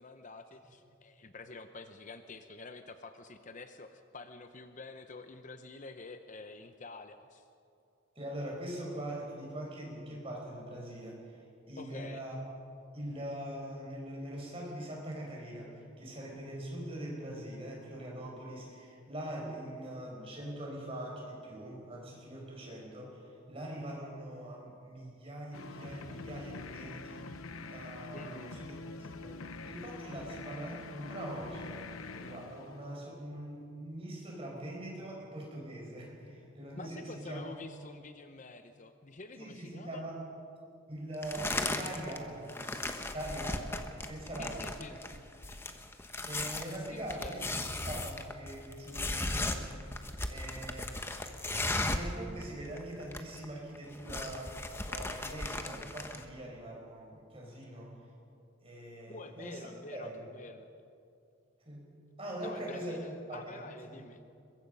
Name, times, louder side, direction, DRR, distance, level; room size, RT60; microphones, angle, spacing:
voice 1, 0.0-7.5 11.8-12.2 28.1-28.6 36.8-40.0 44.4-45.0 46.7-47.7 59.1-60.7 62.4-64.2, left 3 dB, 35° left, 8 dB, 0.7 m, -48 dB
voice 2, 8.1-12.4 12.9-27.4 27.7-28.7 29.0-37.4 39.3-40.2 40.9-42.9 43.1-44.6 45.1-45.2 46.2-51.0 51.9-54.5 54.8-57.9 58.6-59.6 59.9-60.2 61.6-61.8 62.2-63.0 63.3-64.0, right 1 dB, 25° right, -2 dB, 5.6 m, -42 dB
sound 1, 25.5-33.3, left 3 dB, 80° left, 0.9 m, -45 dB
sound 2, 41.2-42.2 42.5-52.2 52.4-52.5 52.8-53.5 53.8-56.2, left 2 dB, 10° left, 1.0 m, -36 dB
23.0 x 21.5 x 5.5 m, 2.5 s
head